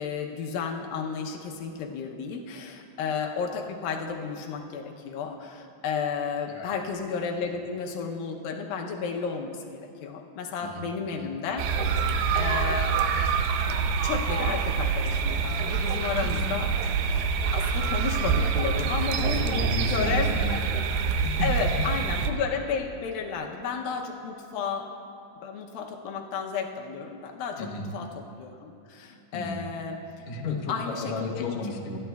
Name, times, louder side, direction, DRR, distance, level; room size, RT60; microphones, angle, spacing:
voice 1, 0.0-13.0 14.0-16.7 17.1-17.3 17.5-19.4 19.9-20.7 21.4-24.9 25.4-30.3 30.7-31.6, left 5 dB, 80° left, 2 dB, 2.5 m, -32 dB
voice 2, 10.6-11.3 16.2-16.6 18.8-20.9 21.2-21.5 27.6-27.9 29.3-29.6 30.3-32.0, left 4 dB, 65° left, 0 dB, 2.1 m, -34 dB
sound 1, 11.6-22.3, right 5 dB, 80° right, 2.3 m, -26 dB
27.0 x 11.0 x 2.3 m, 2.6 s
omnidirectional pair, 4.1 m